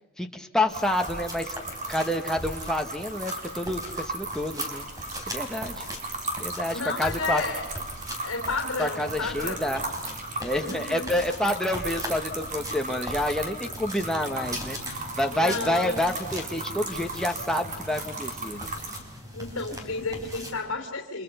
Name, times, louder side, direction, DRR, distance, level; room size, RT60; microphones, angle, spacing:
voice 1, 0.2-1.5 1.9-4.8 5.3-5.8 6.4-7.4 8.8-9.8 10.4-14.8 15.2-18.7, left 1 dB, 5° left, 3 dB, 1.5 m, -28 dB
sound 1, 0.7-20.6, equal, 15° right, 4.0 m, -40 dB
sound 2, 0.7-19.0, right 2 dB, 35° right, 3.6 m, -36 dB
voice 2, 6.7-7.7 8.2-9.7 10.5-11.1 15.3-16.0 19.3-21.2, left 3 dB, 65° left, 3 dB, 3.1 m, -32 dB
30.0 x 26.5 x 5.7 m, 1.0 s
head